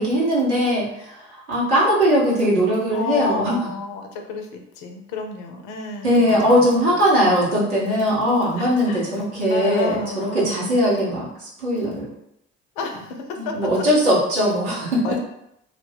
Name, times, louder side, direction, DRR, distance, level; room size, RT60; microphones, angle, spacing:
voice 1, 0.0-3.6 6.0-12.1 13.4-15.2, equal, 85° right, -7 dB, 1.1 m, -20 dB
voice 2, 2.9-7.0 7.2-7.6 8.6-9.0 9.5-10.8 12.8-13.7 15.0-15.2, left 3 dB, 60° left, 4 dB, 0.6 m, -31 dB
2.5 x 2.1 x 3.3 m, 0.80 s
figure-of-eight pair, 50°, 34 cm